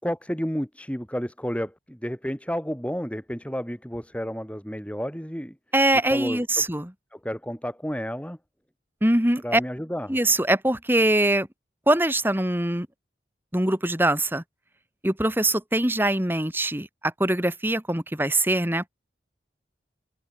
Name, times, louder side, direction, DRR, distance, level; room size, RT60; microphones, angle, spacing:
voice 1, 0.0-5.6 6.1-6.7 7.1-8.4 9.4-10.2, equal, 5° left, 4.1 m, -31 dB
voice 2, 5.7-6.9 9.0-9.6 10.1-11.5 11.9-12.9 13.5-14.4 15.0-18.9, right 1 dB, 10° right, 2.7 m, -23 dB
head